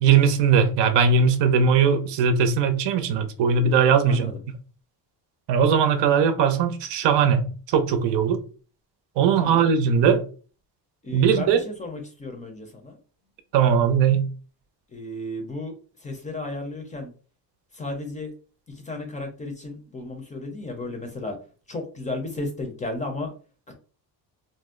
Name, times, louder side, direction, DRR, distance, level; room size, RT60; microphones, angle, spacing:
voice 1, 0.0-4.3 5.5-8.4 9.2-10.2 11.1-11.6 13.5-14.3, right 6 dB, 80° right, 0.6 m, -19 dB
voice 2, 4.1-4.4 9.4-9.7 11.0-13.0 14.9-17.1 17.7-18.3 18.7-21.4 21.7-23.3 23.7-23.8, left 2 dB, 20° left, 0.5 m, -34 dB
2.6 x 2.0 x 3.6 m
cardioid pair, 140°, 42 cm